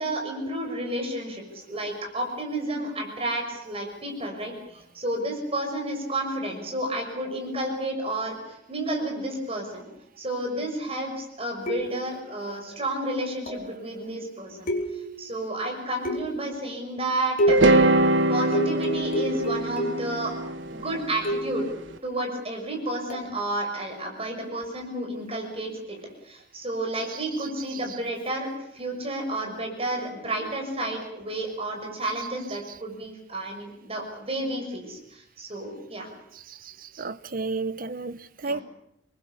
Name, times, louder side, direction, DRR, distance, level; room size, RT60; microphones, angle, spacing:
voice 1, 0.0-9.9 10.2-14.7 15.2-17.6 18.3-20.3 20.7-21.6 22.0-26.0 26.2-28.5 28.7-36.1 38.4-38.6, right 1 dB, 30° right, 6.3 m, -31 dB
sound 1, 11.7-12.2 13.5-13.8 14.7-15.3 16.0-16.5 17.4-17.9 18.5-20.2 21.2-21.7 23.1-23.3, equal, 45° left, 3.8 m, -28 dB
sound 2, 17.5-21.6, right 2 dB, 70° right, 1.7 m, -23 dB
voice 2, 36.5-38.6, right 3 dB, 50° right, 0.9 m, -32 dB
27.0 x 21.0 x 7.0 m
head